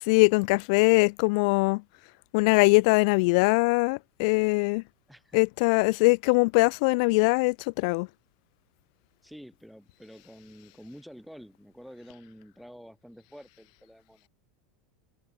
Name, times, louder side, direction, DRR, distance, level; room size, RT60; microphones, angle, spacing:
voice 1, 0.0-1.8 2.3-4.8 5.3-8.1, left 29 dB, 65° left, 0.3 m, -22 dB
voice 2, 5.1-5.4 9.2-14.3, equal, ahead, 2.3 m, -48 dB
hypercardioid pair, 105°, 4 cm